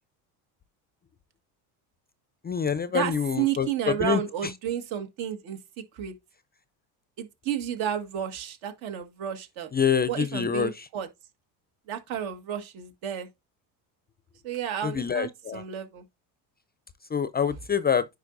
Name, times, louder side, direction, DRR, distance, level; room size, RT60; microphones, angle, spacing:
voice 1, 2.4-4.5 9.7-10.9 14.8-15.6 17.1-18.1, left 7 dB, 20° left, 0.4 m, -26 dB
voice 2, 3.4-5.6 6.0-6.1 7.2-9.7 10.1-11.1 11.9-13.3 14.4-16.0, right 10 dB, 70° right, 1.9 m, -31 dB
9.9 x 4.6 x 2.6 m
supercardioid pair, 90°, 49 cm